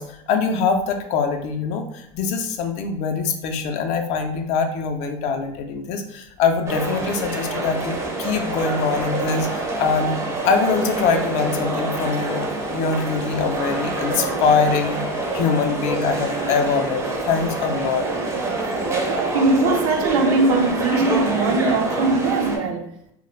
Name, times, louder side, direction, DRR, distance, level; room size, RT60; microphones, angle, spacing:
voice 1, 0.0-10.2 10.4-12.5 12.7-15.0 15.3-18.1, left 5 dB, 45° left, 0.4 m, -23 dB
sound 1, 6.7-22.6, right 2 dB, 15° right, 0.5 m, -26 dB
voice 2, 19.1-22.9, right 3 dB, 70° right, 0.4 m, -20 dB
2.3 x 2.0 x 3.1 m
supercardioid pair, 130°, 17 cm